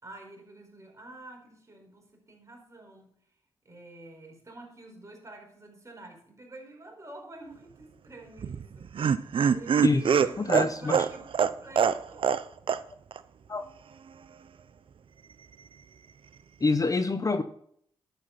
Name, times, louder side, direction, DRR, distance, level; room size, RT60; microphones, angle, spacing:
voice 1, 0.0-3.1 3.6-8.9 9.5-12.3, right 2 dB, 30° right, 2 dB, 4.5 m, -48 dB
Laughter, 8.4-12.4 12.7-12.8 13.1-13.2, right 7 dB, 60° right, 0.6 m, -24 dB
voice 2, 9.8-11.1 13.5-13.6 16.6-17.4, left 3 dB, 35° left, 9 dB, 0.9 m, -27 dB
11.5 x 7.5 x 4.1 m, 0.64 s
cardioid pair, 55°, 10 cm